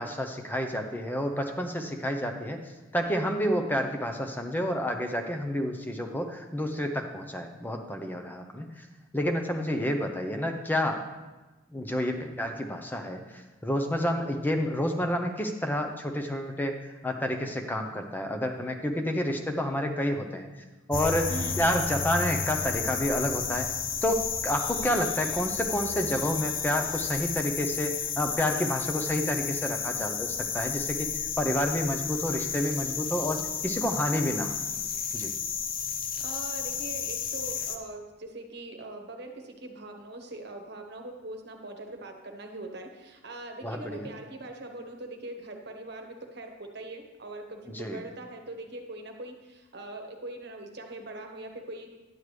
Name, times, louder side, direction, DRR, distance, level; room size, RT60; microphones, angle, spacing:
voice 1, 0.0-2.6 2.9-8.8 9.1-11.0 11.7-16.8 17.0-20.5 20.9-23.7 24.0-31.1 31.4-34.6 35.1-35.3 43.6-44.1 47.7-48.0, equal, 10° left, 4 dB, 0.7 m, -29 dB
sound 1, 20.9-37.8, left 7 dB, 45° left, 0.6 m, -32 dB
voice 2, 36.2-51.9, right 2 dB, 55° right, 3 dB, 1.1 m, -41 dB
10.5 x 7.8 x 3.3 m, 1.2 s
head